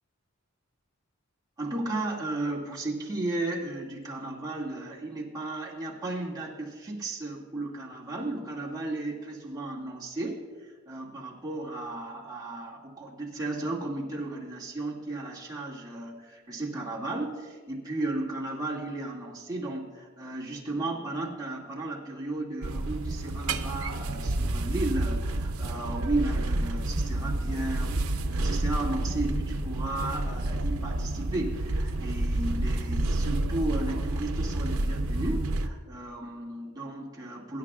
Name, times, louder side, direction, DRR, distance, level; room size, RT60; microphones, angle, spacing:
voice 1, 1.6-37.6, right 2 dB, 20° right, -4 dB, 2.2 m, -34 dB
sound 1, 22.6-35.7, right 1 dB, 85° right, 0.7 m, -29 dB
22.5 x 10.5 x 2.4 m, 1.4 s
head